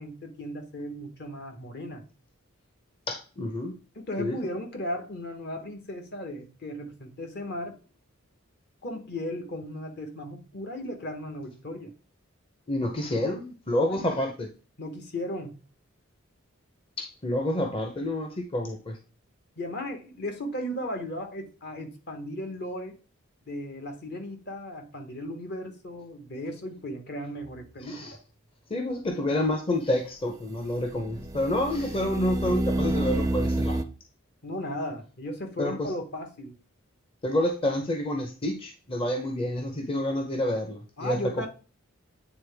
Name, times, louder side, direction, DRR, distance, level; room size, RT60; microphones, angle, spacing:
voice 1, 0.0-2.0 3.9-7.8 8.8-11.9 13.9-14.1 14.8-15.5 19.6-23.0 23.5-28.2 34.4-36.6 41.0-41.5, left 1 dB, 50° left, 1.1 m, -36 dB
voice 2, 3.1-3.7 4.2-4.4 12.7-14.5 17.2-19.0 27.9-28.1 28.7-33.8 35.6-35.9 37.2-41.5, left 1 dB, 25° left, 0.7 m, -28 dB
sound 1, 27.4-27.5 30.9-33.8, right 1 dB, 15° right, 0.4 m, -28 dB
8.7 x 3.7 x 3.4 m
head